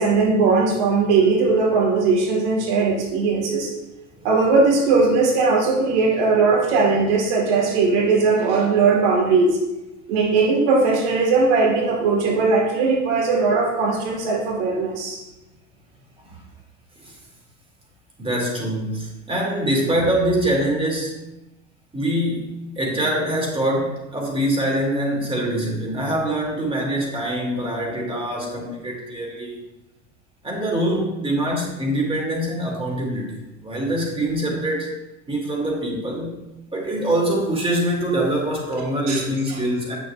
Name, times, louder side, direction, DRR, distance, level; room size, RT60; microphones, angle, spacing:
voice 1, 0.0-3.7 4.2-9.6 10.1-15.2 39.1-39.2 39.5-39.6, right 4 dB, 60° right, -1 dB, 1.5 m, -19 dB
voice 2, 18.2-21.2 21.9-29.6 30.4-34.9 35.3-36.4 36.7-40.0, right 1 dB, 15° right, -1 dB, 2.1 m, -24 dB
8.9 x 6.4 x 2.3 m, 0.98 s
figure-of-eight pair, 70°, 38 cm